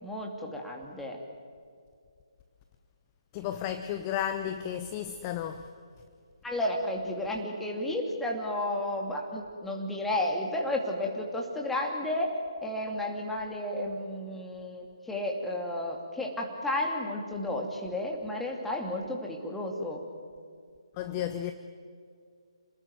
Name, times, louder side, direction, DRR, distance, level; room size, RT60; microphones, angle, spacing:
voice 1, 0.0-1.2 6.4-12.3 12.6-20.0, left 1 dB, 5° left, 0 dB, 2.7 m, -32 dB
voice 2, 3.3-5.7 21.0-21.5, left 10 dB, 20° left, 9 dB, 0.9 m, -33 dB
28.0 x 20.0 x 9.3 m, 2.3 s
figure-of-eight pair, 140°, 3 cm